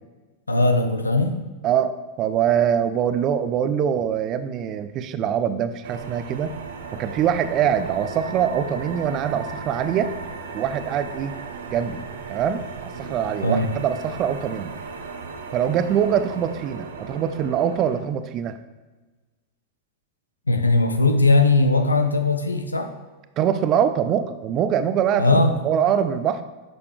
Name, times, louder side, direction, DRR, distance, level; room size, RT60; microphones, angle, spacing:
voice 1, 0.5-1.3 13.4-13.7 20.5-22.9 25.2-25.5, left 2 dB, 80° left, 7 dB, 0.9 m, -19 dB
voice 2, 1.6-6.5 7.0-10.1 10.5-11.3 11.7-12.0 12.3-14.7 15.5-18.6 23.4-26.4, right 9 dB, 35° right, 11 dB, 0.6 m, -23 dB
sound 1, 5.8-18.0, right 4 dB, 65° right, 1.0 m, -36 dB
10.5 x 6.9 x 3.3 m, 1.3 s
figure-of-eight pair, 90°, 0 cm